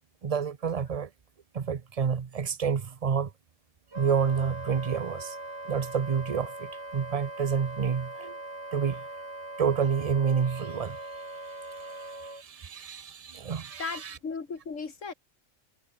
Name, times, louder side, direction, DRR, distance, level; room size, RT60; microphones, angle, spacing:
voice 1, 0.2-1.1 1.5-3.3 3.9-5.4 5.6-8.4 8.7-9.0 9.6-11.2 11.6-14.1, right 6 dB, 35° right, 0.6 m, -29 dB
Wind instrument woodwind instrument, 3.9-12.4, right 1 dB, 55° right, 6.7 m, -41 dB
voice 2, 13.8-15.1, left 5 dB, 65° left, 2.4 m, -36 dB
omnidirectional pair, 1.4 m